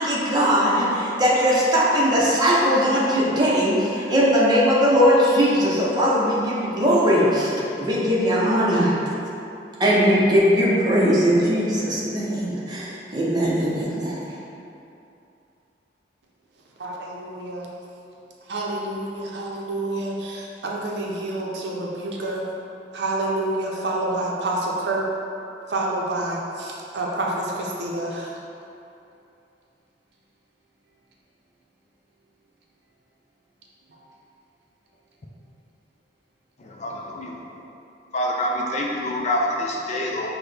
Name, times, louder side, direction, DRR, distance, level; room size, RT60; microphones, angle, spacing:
voice 1, 0.0-7.5 7.8-8.9 9.8-14.4, equal, 25° right, -6 dB, 0.7 m, -20 dB
voice 2, 16.8-17.7 18.5-22.4 22.9-25.1 25.7-28.3 33.9-34.0, right 2 dB, 70° right, -2 dB, 0.6 m, -28 dB
voice 3, 36.6-37.4 38.1-40.3, left 1 dB, 40° left, -1 dB, 0.4 m, -26 dB
6.0 x 2.1 x 3.3 m, 2.7 s
head